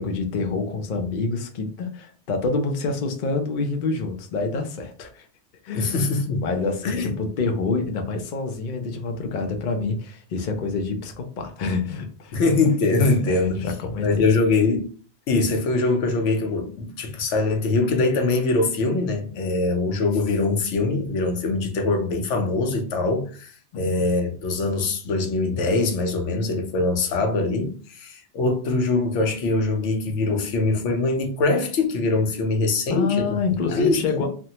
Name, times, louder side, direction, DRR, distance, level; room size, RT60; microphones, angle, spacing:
voice 1, 0.0-5.3 5.6-6.0 6.4-12.4 13.2-14.3 23.7-24.0 32.9-34.3, left 4 dB, 55° left, 0.6 m, -27 dB
voice 2, 5.7-6.4 6.8-7.1 12.3-13.7 14.0-14.9 15.3-33.3 33.7-34.3, left 3 dB, 80° left, 1.0 m, -23 dB
3.4 x 2.1 x 2.8 m
omnidirectional pair, 1.2 m